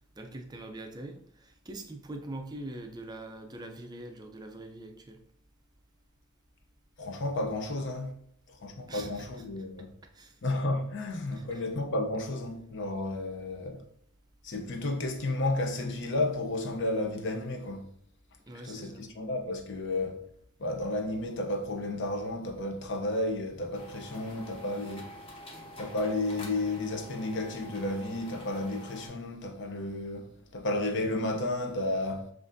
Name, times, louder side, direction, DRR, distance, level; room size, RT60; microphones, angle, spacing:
voice 1, 0.2-5.2 8.9-9.6 10.1-10.4 11.3-11.6 18.5-19.1, right 1 dB, 20° right, 0.4 m, -43 dB
voice 2, 7.0-8.1 8.5-9.9 10.4-13.8 14.4-17.8 18.6-20.2 20.6-25.1 25.8-32.3, left 2 dB, 55° left, 0.6 m, -32 dB
sound 1, 23.7-29.1, left 1 dB, 25° left, 0.9 m, -47 dB
7.6 x 2.5 x 2.6 m
head